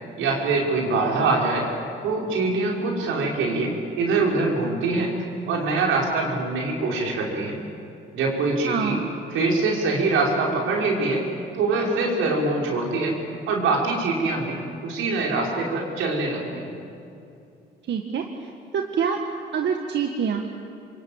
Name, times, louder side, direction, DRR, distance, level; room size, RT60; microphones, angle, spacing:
voice 1, 0.2-1.7 2.0-5.1 5.5-7.6 8.1-9.0 9.3-11.3 11.5-13.2 13.5-16.8, right 3 dB, 90° right, -1 dB, 5.7 m, -24 dB
voice 2, 8.7-9.1 17.9-19.2 19.5-20.5, right 7 dB, 65° right, 3 dB, 1.9 m, -26 dB
27.0 x 24.0 x 9.0 m, 2.6 s
cardioid pair, 90°, 20 cm